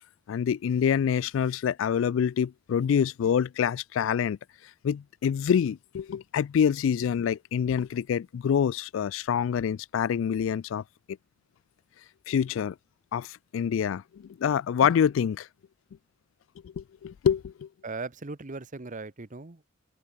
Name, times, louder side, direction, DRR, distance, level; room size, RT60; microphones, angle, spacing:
voice 1, 0.3-4.4 4.8-10.8 12.3-12.8 13.1-15.5 16.6-17.7, left 8 dB, 70° left, 0.3 m, -26 dB
voice 2, 17.8-19.7, right 3 dB, 40° right, 1.0 m, -38 dB
head